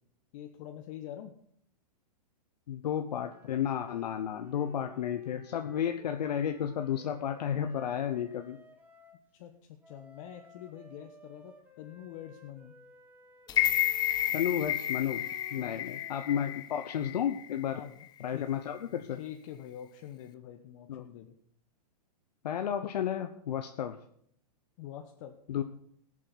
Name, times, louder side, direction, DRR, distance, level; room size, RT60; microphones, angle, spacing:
voice 1, 0.3-1.3 9.3-12.8 15.6-16.0 16.3-16.6 17.7-18.1 18.3-18.5 19.1-21.3 24.8-25.6, left 11 dB, 50° left, 4 dB, 1.1 m, -46 dB
voice 2, 2.7-8.6 14.3-17.8 18.2-19.2 20.9-21.1 22.4-24.0 25.5-25.6, left 9 dB, 75° left, 6 dB, 0.9 m, -32 dB
sound 1, 3.2-9.2 9.8-16.5, right 1 dB, 10° right, 1.8 m, -56 dB
sound 2, 13.5-17.6 18.0-18.1, left 13 dB, 20° left, 0.6 m, -31 dB
18.5 x 7.5 x 4.1 m, 0.65 s
hypercardioid pair, 130°, 21 cm